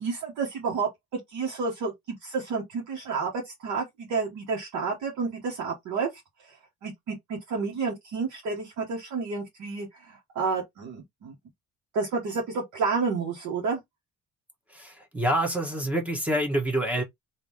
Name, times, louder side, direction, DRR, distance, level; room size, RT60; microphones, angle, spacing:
voice 1, 0.0-6.1 6.8-11.3 11.9-13.8, right 4 dB, 70° right, 1.4 m, -30 dB
voice 2, 14.7-17.0, right 1 dB, 5° right, 1.1 m, -27 dB
3.7 x 2.8 x 3.0 m
cardioid pair, 140°, 30 cm